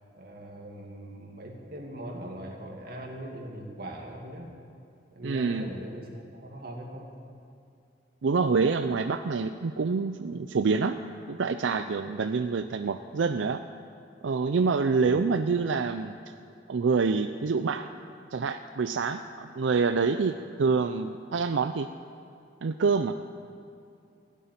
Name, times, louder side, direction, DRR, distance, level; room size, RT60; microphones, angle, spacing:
voice 1, 0.2-4.5 5.1-7.1, right 1 dB, 55° right, 1 dB, 2.3 m, -40 dB
voice 2, 5.2-5.6 8.2-10.9 11.3-13.6 14.2-16.1 16.7-17.9 18.3-21.9 22.6-23.2, right 4 dB, 90° right, 9 dB, 0.5 m, -26 dB
15.5 x 8.4 x 9.4 m, 2.6 s
head